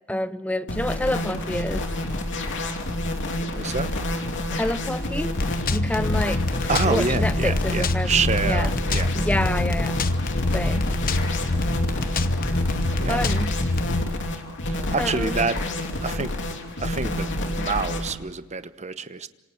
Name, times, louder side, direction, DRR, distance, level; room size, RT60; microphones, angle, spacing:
voice 1, 0.1-1.9 4.5-5.4 5.7-6.4 6.9-8.2 8.4-8.7 9.1-10.0 10.5-10.9 13.1-13.6 14.9-15.4, left 1 dB, 5° left, 0.7 m, -28 dB
sound 1, 0.7-18.1, left 1 dB, 60° left, 3.0 m, -29 dB
voice 2, 3.5-3.9 6.7-9.1 9.4-9.5 13.0-13.2 14.7-15.6 16.0-16.3 16.8-19.3, right 4 dB, 35° right, 1.0 m, -27 dB
sound 2, 5.4-14.0, left 2 dB, 45° left, 1.1 m, -25 dB
27.0 x 26.0 x 4.6 m
head